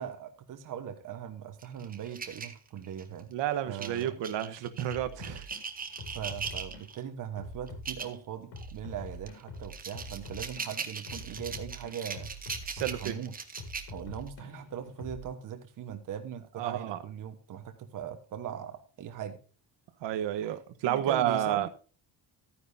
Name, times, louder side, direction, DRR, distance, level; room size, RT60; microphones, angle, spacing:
voice 1, 0.0-3.3 3.7-4.2 6.1-12.3 12.8-13.3 13.9-19.4 20.8-21.7, right 9 dB, 45° right, 6 dB, 1.3 m, -40 dB
sound 1, 1.6-3.2 3.8-7.0 7.7-8.2 8.6-8.7 9.3-14.3, right 5 dB, 20° right, 1.0 m, -40 dB
voice 2, 3.3-5.5 12.7-13.2 16.6-17.0 20.0-21.7, right 11 dB, 85° right, 11 dB, 1.3 m, -31 dB
sound 2, 4.9-5.6 6.0-6.9 7.4-8.1 8.5-10.7 11.1-13.2 13.6-15.3, left 1 dB, 75° left, 5.3 m, -44 dB
13.5 x 9.8 x 2.7 m, 0.36 s
cardioid pair, 170°, 42 cm